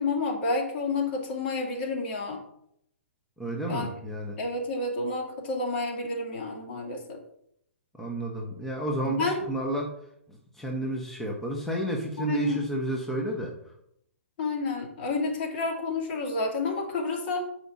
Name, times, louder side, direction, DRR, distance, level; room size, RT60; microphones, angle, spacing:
voice 1, 0.0-2.4 3.7-3.9 4.4-7.2 9.0-9.4 12.2-12.6 14.4-17.4, left 3 dB, 50° left, 0 dB, 2.2 m, -30 dB
voice 2, 3.4-4.4 8.0-9.9 10.3-13.5, right 1 dB, 5° left, -1 dB, 1.1 m, -31 dB
8.0 x 5.0 x 4.1 m, 0.73 s
hypercardioid pair, 125°, 7 cm